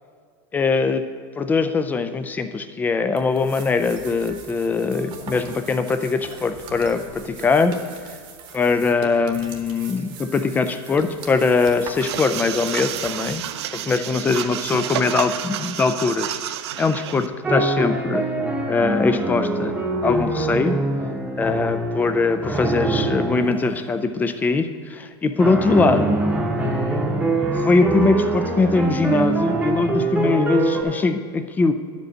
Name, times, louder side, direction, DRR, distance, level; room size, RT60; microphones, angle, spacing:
voice 1, 0.5-1.0 1.4-7.7 8.5-13.4 13.7-16.4 16.8-18.3 18.7-19.7 20.0-20.8 21.4-26.2 27.5-31.7, left 4 dB, 10° left, 9 dB, 0.4 m, -21 dB
sound 1, 3.2-13.5, right 5 dB, 35° right, 1.1 m, -40 dB
sound 2, 12.0-17.3, right 11 dB, 85° right, 0.5 m, -30 dB
sound 3, 17.4-23.6 25.4-30.8, right 2 dB, 10° right, 0.9 m, -24 dB
10.5 x 5.2 x 6.2 m, 2.1 s
supercardioid pair, 150°, 14 cm